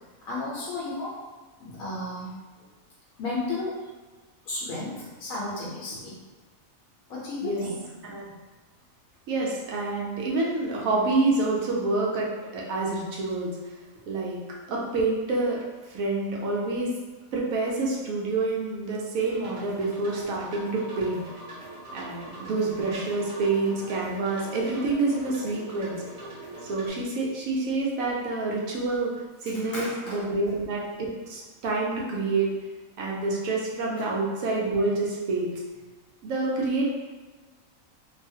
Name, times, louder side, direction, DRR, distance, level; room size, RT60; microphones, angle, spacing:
voice 1, 0.3-1.2 1.6-2.3 2.6-2.7 3.2-3.7 4.4-6.2 7.1-7.8 29.5-30.3 34.0-34.1, left 2 dB, 80° left, -6 dB, 1.1 m, -33 dB
voice 2, 9.3-12.3 12.5-13.5 14.1-14.4 14.7-15.6 15.9-16.9 17.3-21.2 21.9-26.0 26.6-29.1 29.4-32.5 33.0-35.5 36.2-36.9, right 3 dB, 80° right, -4 dB, 1.1 m, -27 dB
sound 1, 19.2-26.9, right 2 dB, 35° right, 1.0 m, -42 dB
2.7 x 2.3 x 2.6 m, 1.3 s
omnidirectional pair, 1.4 m